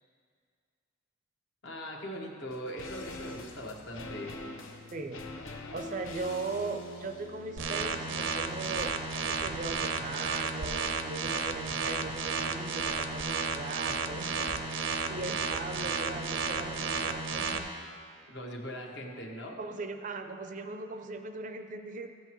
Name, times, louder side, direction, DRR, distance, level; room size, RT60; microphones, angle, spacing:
voice 1, 1.6-4.4 18.3-19.6, equal, 60° left, -1 dB, 1.2 m, -40 dB
sound 1, 2.5-11.9 12.1-12.2, left 2 dB, 80° left, 0.7 m, -46 dB
voice 2, 4.9-17.9 19.6-22.1, right 3 dB, 40° right, 7 dB, 0.4 m, -39 dB
sound 2, 7.6-17.6, right 4 dB, 80° right, 0.6 m, -33 dB
14.0 x 7.9 x 3.0 m, 2.1 s
head